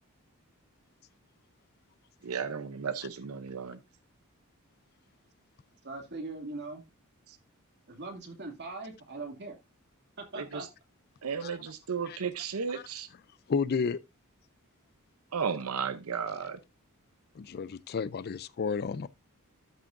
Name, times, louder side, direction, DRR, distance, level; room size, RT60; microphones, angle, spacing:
voice 1, 2.2-3.8 7.3-7.4 10.3-10.7 11.2-13.1 15.3-16.6, right 6 dB, 80° right, 0.7 m, -34 dB
voice 2, 5.8-6.8 7.9-9.6 10.3-10.6, right 3 dB, 50° right, 2.5 m, -40 dB
voice 3, 13.5-14.0 17.4-19.1, left 5 dB, 45° left, 0.4 m, -31 dB
13.0 x 6.1 x 2.5 m
head